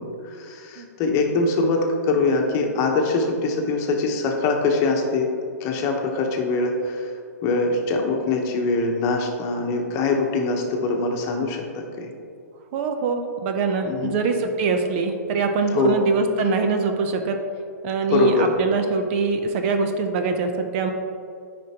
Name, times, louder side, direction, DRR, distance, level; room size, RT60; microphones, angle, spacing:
voice 1, 0.0-5.3 5.6-7.1 7.4-12.1 13.8-14.1 15.7-16.0 18.1-18.5, left 3 dB, 35° left, 2 dB, 1.0 m, -23 dB
voice 2, 12.7-17.4 17.8-20.9, right 4 dB, 45° right, 6 dB, 0.6 m, -23 dB
9.4 x 5.2 x 3.0 m, 2.4 s
hypercardioid pair, 130°, 9 cm